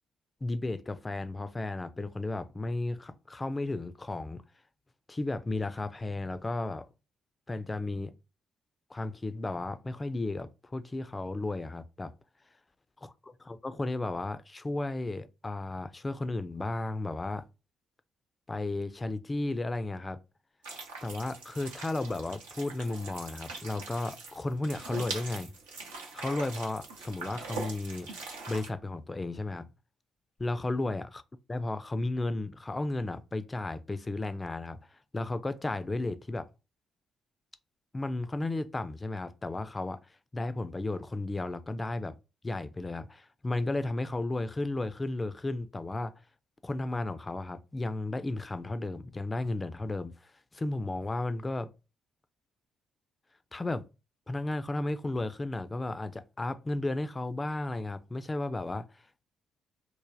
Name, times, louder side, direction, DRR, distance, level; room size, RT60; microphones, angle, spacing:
voice 1, 0.4-4.4 5.1-6.9 7.5-8.1 8.9-12.1 13.0-17.4 18.5-20.2 21.0-25.5 26.1-29.7 30.4-31.2 31.5-36.5 37.9-42.1 42.4-46.1 46.6-51.7 53.5-53.8 54.3-59.2, left 2 dB, 25° left, 0.4 m, -34 dB
sound 1, 20.6-28.7, right 3 dB, 85° right, 0.7 m, -42 dB
3.1 x 2.1 x 2.5 m
hypercardioid pair, 45°, 0 cm